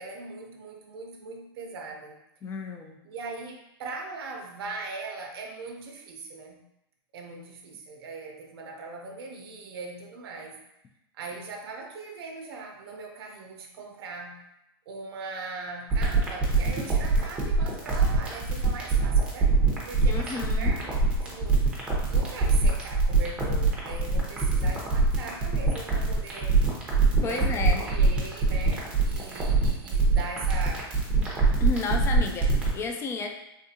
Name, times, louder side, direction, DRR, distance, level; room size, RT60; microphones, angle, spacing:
voice 1, 0.0-2.2 3.0-6.6 7.1-10.6 11.1-14.4 14.9-20.9 21.2-21.7 22.1-26.6 27.2-30.9, right 3 dB, 75° right, 2 dB, 0.5 m, -40 dB
voice 2, 2.4-3.0 20.1-20.8 27.0-27.8 31.2-31.3 31.6-33.3, left 4 dB, 20° left, 4 dB, 0.4 m, -32 dB
sound 1, 15.9-32.7, right 3 dB, 10° right, 0.8 m, -23 dB
3.6 x 2.3 x 2.7 m, 0.87 s
hypercardioid pair, 130°, 13 cm